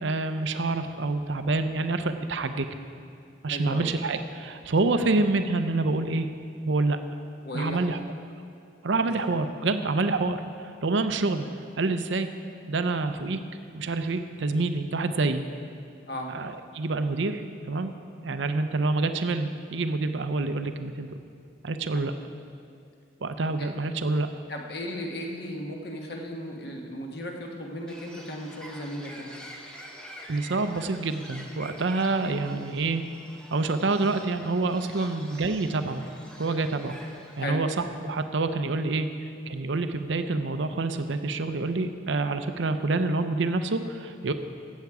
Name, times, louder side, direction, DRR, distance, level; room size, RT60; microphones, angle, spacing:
voice 1, 0.0-2.7 3.4-6.3 6.6-7.0 7.5-8.0 8.8-11.5 11.8-12.3 12.7-13.4 13.7-15.4 16.3-17.9 18.2-21.2 21.6-22.1 23.2-24.3 30.3-33.0 33.5-36.0 36.4-37.0 37.4-39.1 39.5-44.3, right 3 dB, 75° right, 9 dB, 0.6 m, -27 dB
voice 2, 3.5-3.9 7.4-7.8 9.0-9.1 16.1-16.3 23.6-23.7 24.5-29.3 35.0-35.1 37.4-37.6, equal, 55° left, 1 dB, 1.3 m, -35 dB
Bird, 27.9-37.5, equal, 5° left, 0.8 m, -46 dB
15.0 x 8.2 x 4.8 m, 2.4 s
head